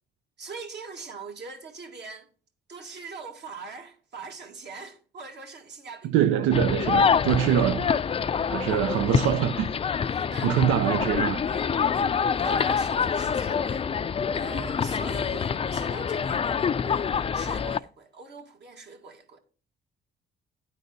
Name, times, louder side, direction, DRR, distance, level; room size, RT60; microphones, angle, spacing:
voice 1, 0.4-2.3 2.7-6.5 10.1-10.8 11.5-11.7 11.9-13.9 14.3-19.4, right 4 dB, 60° right, 2.0 m, -42 dB
voice 2, 6.0-8.2 8.5-9.7 10.4-11.4, right 10 dB, 90° right, 0.5 m, -24 dB
sound 1, 6.5-17.8, left 6 dB, 30° left, 0.4 m, -26 dB
10.5 x 4.0 x 6.6 m
cardioid pair, 90°, 20 cm